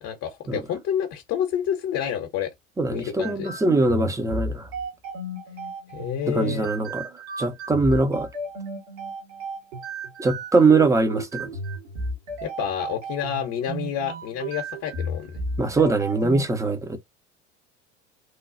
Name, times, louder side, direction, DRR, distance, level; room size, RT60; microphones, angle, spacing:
voice 1, 0.0-2.5 2.9-3.5 5.9-6.7 12.4-15.3, left 9 dB, 40° left, 0.8 m, -29 dB
voice 2, 2.8-4.7 6.3-7.0 7.4-8.3 10.2-11.5 15.6-17.0, right 3 dB, 10° right, 0.6 m, -22 dB
sound 1, 3.2-16.4, right 2 dB, 60° right, 1.3 m, -33 dB
3.1 x 2.3 x 2.5 m
figure-of-eight pair, 70°, 37 cm